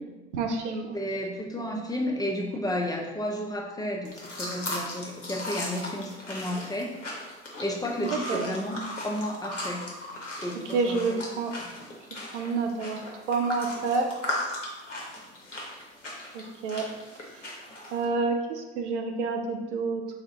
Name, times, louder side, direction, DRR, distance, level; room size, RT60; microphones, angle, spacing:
voice 1, 0.3-1.0 8.0-8.5 10.7-11.5 12.3-13.0 13.3-14.1 16.3-16.9 17.9-20.1, right 4 dB, 75° right, 3 dB, 0.5 m, -28 dB
voice 2, 0.9-6.9 7.6-9.8 10.4-11.2 11.6-11.8, left 1 dB, 10° left, 1 dB, 0.4 m, -32 dB
sound 1, 4.0-18.0, left 1 dB, 90° left, 0.6 m, -37 dB
3.5 x 2.4 x 3.7 m, 1.1 s
figure-of-eight pair, 55°, 35 cm